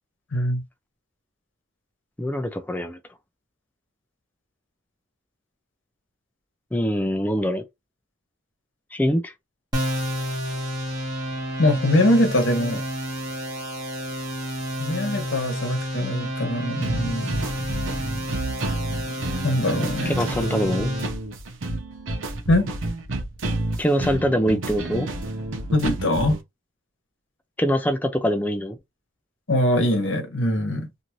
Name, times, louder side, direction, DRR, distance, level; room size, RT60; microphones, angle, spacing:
voice 1, 0.3-0.6 11.6-12.8 14.8-17.4 19.4-20.1 22.5-22.7 25.7-26.4 29.5-30.9, left 1 dB, 80° left, 1.0 m, -22 dB
voice 2, 2.2-3.0 6.7-7.6 8.9-9.3 20.1-20.9 23.8-25.1 27.6-28.8, equal, 10° left, 0.4 m, -23 dB
sound 1, 9.7-21.1, equal, 20° right, 1.2 m, -30 dB
sound 2, 16.8-26.4, right 2 dB, 85° right, 0.7 m, -30 dB
2.6 x 2.5 x 3.0 m
head